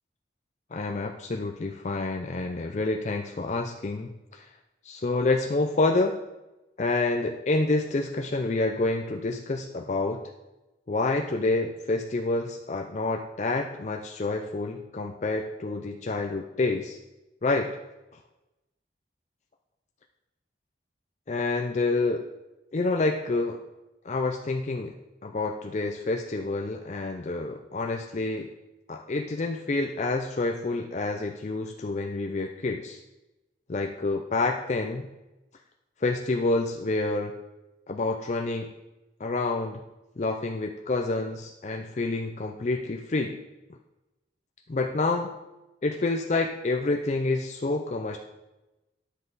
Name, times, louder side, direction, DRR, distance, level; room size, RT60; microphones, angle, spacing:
voice 1, 0.7-4.5 4.8-6.2 6.8-10.2 10.9-17.0 17.4-17.8 21.3-22.3 22.7-23.6 24.0-24.9 25.2-28.5 28.9-33.0 33.7-35.1 36.0-37.3 37.9-38.7 39.2-39.8 40.2-43.4 44.7-45.3 45.8-48.2, left 3 dB, 40° left, 3 dB, 0.4 m, -28 dB
9.9 x 7.4 x 4.0 m, 1.0 s
head